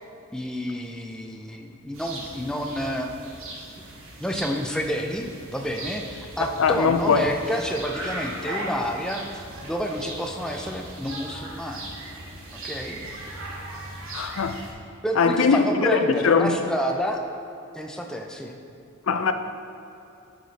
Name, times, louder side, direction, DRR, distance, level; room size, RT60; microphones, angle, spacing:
voice 1, 0.3-3.1 3.8-3.9 4.2-12.0 12.6-13.0 15.0-17.2 17.7-18.6, equal, 5° left, 0.4 m, -29 dB
sound 1, 1.9-14.7, right 1 dB, 75° right, 1.2 m, -38 dB
voice 2, 6.6-7.3 14.1-14.6 15.2-16.6 19.1-19.3, left 5 dB, 80° left, 0.4 m, -21 dB
9.5 x 5.0 x 4.0 m
head